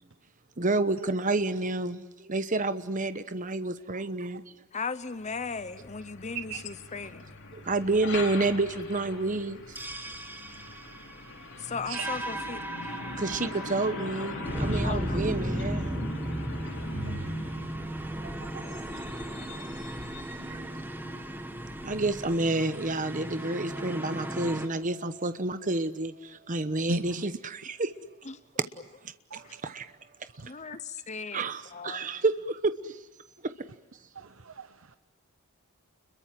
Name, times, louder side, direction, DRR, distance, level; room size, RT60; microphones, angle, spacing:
voice 1, 0.6-4.5 7.5-9.8 13.0-16.0 20.5-20.7 21.8-27.9 29.0-29.9 30.2-30.3 31.3-33.0 33.4-33.5, right 2 dB, 40° right, 1.1 m, -29 dB
voice 2, 4.7-7.2 11.6-13.0 14.7-15.2 28.3-28.4 30.5-31.4 31.7-32.1, left 5 dB, 35° left, 0.8 m, -37 dB
Truck, 5.2-22.9, left 2 dB, 55° left, 5.1 m, -42 dB
sound 1, 9.8-24.7, right 1 dB, 10° right, 1.7 m, -36 dB
voice 3, 11.2-12.1 16.6-17.8 18.1-18.8 20.5-20.7 26.9-27.1 29.3-29.6 30.4-30.5 34.1-35.0, right 3 dB, 65° right, 1.0 m, -40 dB
voice 4, 18.6-21.3, right 2 dB, 85° right, 3.3 m, -58 dB
30.0 x 22.5 x 7.7 m
head